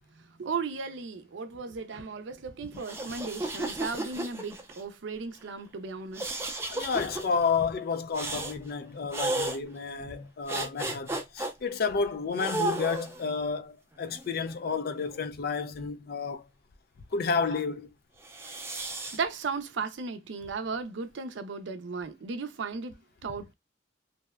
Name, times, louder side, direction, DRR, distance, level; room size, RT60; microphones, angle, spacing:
voice 1, 0.4-6.4 19.1-23.5, right 4 dB, 90° right, 0.5 m, -35 dB
sound 1, 2.8-4.8 6.1-7.2 8.1-8.6 9.1-9.6 10.5-11.5 12.4-13.3 14.1-15.2 18.2-19.2, right 2 dB, 15° right, 0.5 m, -33 dB
voice 2, 6.7-16.5 17.1-17.9, left 5 dB, 55° left, 0.4 m, -31 dB
2.7 x 2.2 x 2.2 m
head